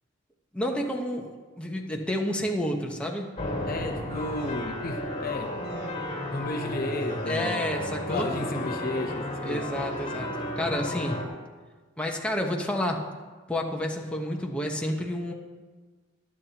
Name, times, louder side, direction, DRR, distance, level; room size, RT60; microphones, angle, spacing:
voice 1, 0.5-1.3 1.6-3.3 7.3-8.3 9.4-11.2 12.0-13.0 13.5-15.3, left 1 dB, 5° left, 1.1 m, -30 dB
sound 1, 3.4-11.3, left 1 dB, 30° left, 1.9 m, -33 dB
voice 2, 3.7-5.6 6.3-7.6 8.1-9.7, left 2 dB, 50° left, 0.8 m, -33 dB
22.5 x 8.6 x 3.0 m
head